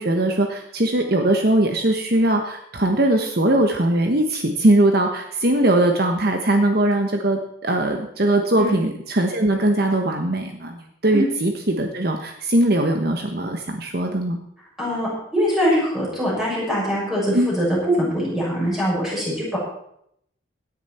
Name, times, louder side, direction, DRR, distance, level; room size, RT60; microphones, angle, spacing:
voice 1, 0.0-14.4 17.3-17.5, right 1 dB, 50° right, 4 dB, 1.2 m, -20 dB
voice 2, 14.8-19.6, equal, ahead, -7 dB, 6.8 m, -23 dB
17.0 x 10.0 x 4.4 m, 0.73 s
head